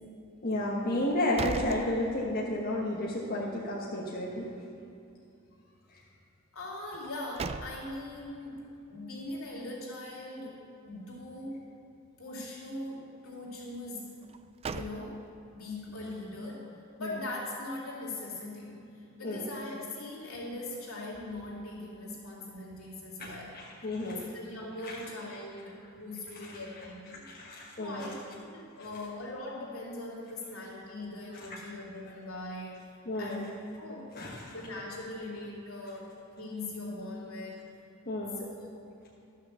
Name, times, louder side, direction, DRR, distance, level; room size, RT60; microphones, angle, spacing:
voice 1, 0.4-4.5 17.0-17.2 19.2-19.5 23.2-24.2 24.8-24.9 26.4-26.6 27.2-28.1 33.1-33.4 34.2-34.5 38.1-38.4, left 1 dB, 45° left, -5 dB, 1.4 m, -32 dB
sound 1, 1.0-2.6 3.0-3.1 6.9-8.2 14.2-15.5, right 4 dB, 30° right, 0.3 m, -39 dB
voice 2, 6.5-11.6 12.2-14.2 14.7-15.2 15.5-16.7 17.0-27.3 27.8-28.2 28.5-32.8 33.2-33.5 33.8-37.6 38.4-38.9, left 2 dB, 75° left, -5 dB, 2.9 m, -41 dB
12.0 x 6.5 x 7.0 m, 2.6 s
head